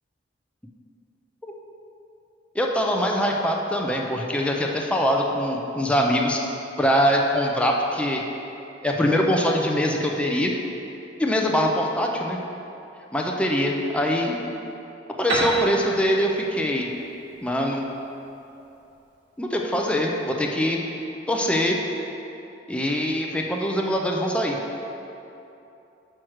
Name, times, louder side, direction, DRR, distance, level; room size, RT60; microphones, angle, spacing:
voice 1, 2.5-6.4 6.8-8.2 8.8-10.5 11.2-12.4 13.1-14.4 15.2-16.9 17.4-17.8 19.4-20.8 21.3-21.8 22.7-24.6, equal, 5° left, 0 dB, 0.5 m, -23 dB
Piano, 15.3-18.9, right 1 dB, 75° right, 1.2 m, -31 dB
6.0 x 4.5 x 6.3 m, 2.9 s
head